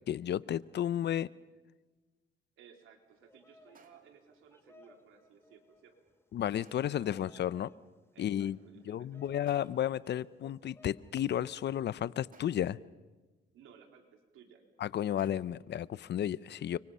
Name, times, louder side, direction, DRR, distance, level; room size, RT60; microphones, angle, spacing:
voice 1, 0.1-1.3 6.3-7.7 8.2-8.6 8.9-12.8 14.8-16.8, left 10 dB, 60° left, 0.7 m, -33 dB
sound 1, 1.0-1.5 3.7-4.3 6.6-7.1 9.5-10.0 12.3-12.9 15.2-15.7, right 5 dB, 45° right, 2.8 m, -63 dB
voice 2, 2.6-6.0 6.7-7.2 8.1-9.4 13.5-14.7, right 7 dB, 85° right, 3.6 m, -59 dB
Bird vocalization bird call bird song, 3.1-11.1, left 2 dB, 10° left, 2.6 m, -63 dB
30.0 x 25.0 x 5.6 m
cardioid pair, 90°, 20 cm